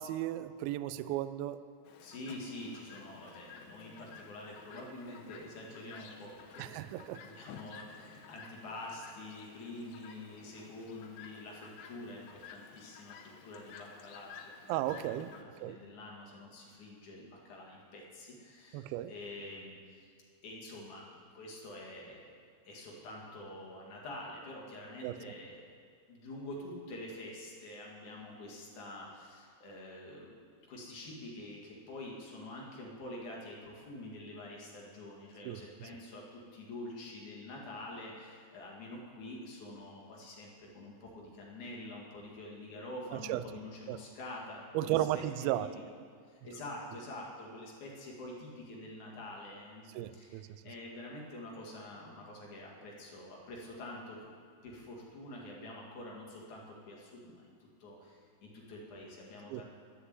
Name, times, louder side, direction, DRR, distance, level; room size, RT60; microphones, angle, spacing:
voice 1, 0.0-1.6 6.6-7.2 14.7-15.3 15.6-15.8 18.7-19.1 25.0-25.2 35.5-35.9 43.3-43.4 43.9-44.0 44.7-45.7 50.0-50.5 59.5-59.6, right 14 dB, 85° right, 13 dB, 2.2 m, -34 dB
Chirp tweet, 1.9-15.4, left 6 dB, 70° left, 2.5 m, -53 dB
voice 2, 2.0-20.1 20.4-22.3 22.6-25.6 26.1-30.4 30.7-45.7 46.3-54.3 54.6-57.5 57.8-59.6, left 1 dB, 55° left, -2 dB, 3.1 m, -47 dB
12.0 x 10.0 x 8.0 m, 2.2 s
omnidirectional pair, 4.7 m